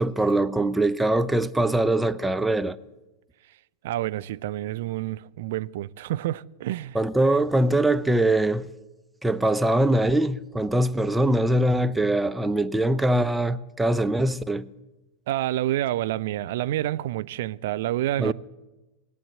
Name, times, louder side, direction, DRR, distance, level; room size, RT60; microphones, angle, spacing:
voice 1, 0.0-2.8 6.9-8.7 9.2-14.7 18.2-18.3, right 1 dB, 5° right, 0.6 m, -22 dB
voice 2, 3.8-7.0 15.3-18.3, right 14 dB, 55° right, 0.4 m, -28 dB
20.5 x 8.6 x 7.7 m
figure-of-eight pair, 90°, 0 cm